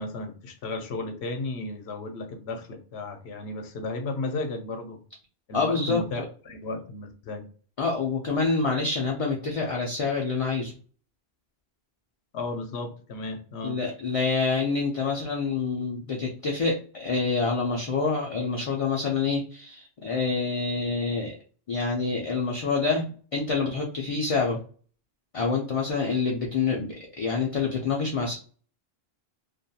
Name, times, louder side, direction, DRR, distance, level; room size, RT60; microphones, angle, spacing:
voice 1, 0.0-5.0 5.5-7.5 12.3-13.8, left 3 dB, 85° left, 6 dB, 0.8 m, -34 dB
voice 2, 5.5-6.2 7.8-10.7 13.6-21.3 21.7-23.1 23.3-24.6 25.3-28.4, left 4 dB, 55° left, 0 dB, 0.3 m, -27 dB
2.4 x 2.2 x 2.7 m, 0.41 s
omnidirectional pair, 1.1 m